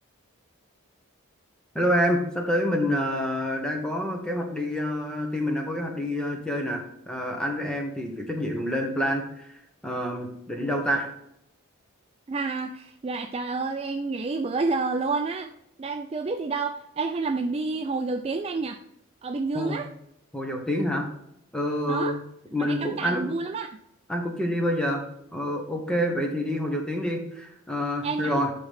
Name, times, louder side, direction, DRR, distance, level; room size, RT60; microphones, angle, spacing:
voice 1, 1.7-11.1 19.5-19.8 20.3-21.1 21.5-22.2 22.5-23.3 24.1-25.0 25.3-28.5, equal, 5° left, 1 dB, 1.1 m, -27 dB
voice 2, 12.3-15.5 15.8-18.8 19.2-19.9 21.9-22.2 22.6-23.7 28.0-28.4, right 3 dB, 30° right, 7 dB, 0.3 m, -29 dB
11.0 x 3.9 x 3.5 m, 0.77 s
head